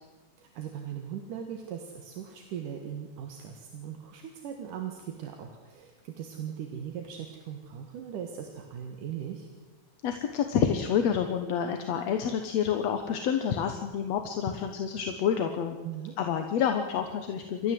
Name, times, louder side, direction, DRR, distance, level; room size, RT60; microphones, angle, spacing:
voice 1, 0.4-9.5 15.8-16.1, right 9 dB, 80° right, 3 dB, 3.1 m, -39 dB
voice 2, 10.0-15.8 16.2-17.7, left 8 dB, 60° left, 6 dB, 2.2 m, -28 dB
28.5 x 13.0 x 7.8 m, 1.3 s
omnidirectional pair, 3.6 m